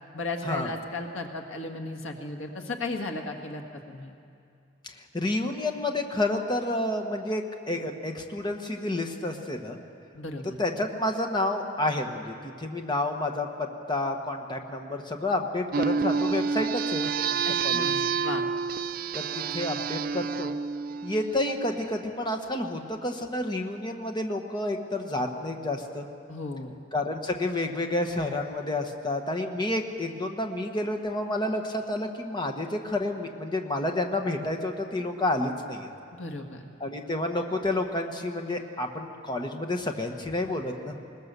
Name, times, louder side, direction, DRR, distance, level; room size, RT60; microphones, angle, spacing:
voice 1, 0.1-4.1 10.1-10.6 17.5-18.5 26.3-26.8 36.1-36.6, left 2 dB, 90° left, 3 dB, 1.7 m, -35 dB
voice 2, 4.8-9.8 10.6-17.9 19.1-20.6 21.0-26.1 26.9-35.9 36.8-41.0, left 1 dB, 25° left, 3 dB, 1.2 m, -30 dB
sound 1, 15.7-21.7, right 5 dB, 45° right, 0.4 m, -29 dB
21.0 x 20.0 x 6.8 m, 2.5 s
head